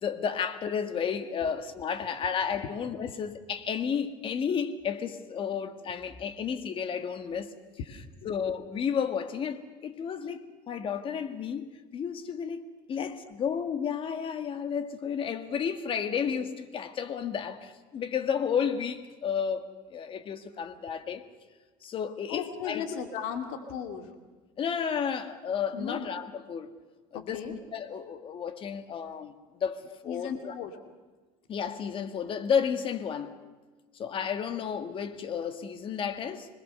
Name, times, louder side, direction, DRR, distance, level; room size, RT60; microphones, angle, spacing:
voice 1, 0.0-7.5 8.3-11.7 11.9-21.2 21.8-22.9 24.6-26.7 27.1-29.3 29.6-30.5 31.5-33.4 33.9-36.5, left 7 dB, 40° left, 1.8 m, -32 dB
voice 2, 22.3-24.1 25.7-26.1 27.1-27.5 30.1-30.8, left 8 dB, 75° left, 2.6 m, -37 dB
26.0 x 21.0 x 6.8 m
cardioid pair, 135°, 14 cm